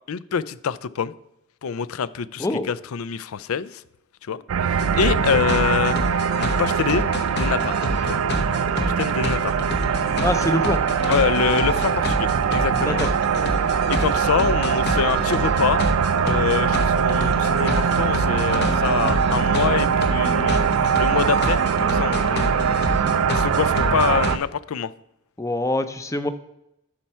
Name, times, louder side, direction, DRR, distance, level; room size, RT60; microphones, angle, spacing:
voice 1, 0.1-1.1 1.6-3.8 4.3-6.0 6.4-7.0 7.4-7.8 8.0-8.2 8.8-9.5 11.1-13.0 13.9-15.8 16.2-20.6 21.0-22.5 23.3-24.9, left 7 dB, 75° left, 17 dB, 0.4 m, -25 dB
voice 2, 2.4-2.7 10.2-10.8 12.8-13.1 25.4-26.3, left 1 dB, 15° left, 10 dB, 0.5 m, -24 dB
sound 1, 4.5-24.4, right 6 dB, 75° right, 0.4 m, -22 dB
sound 2, 4.8-24.3, left 1 dB, 50° left, 0.8 m, -29 dB
12.0 x 4.4 x 5.5 m, 0.81 s
head